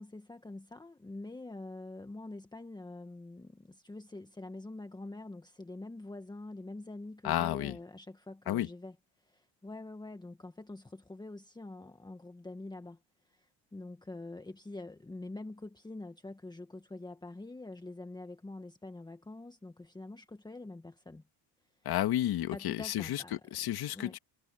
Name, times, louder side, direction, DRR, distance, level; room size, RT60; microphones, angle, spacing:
voice 1, 0.0-13.0 13.2-21.2 22.5-23.4 23.9-24.2, left 2 dB, 10° left, 1.6 m, -45 dB
voice 2, 7.2-7.8 8.5-8.7 21.8-24.2, left 13 dB, 55° left, 2.3 m, -32 dB
cardioid pair, 110°, 43 cm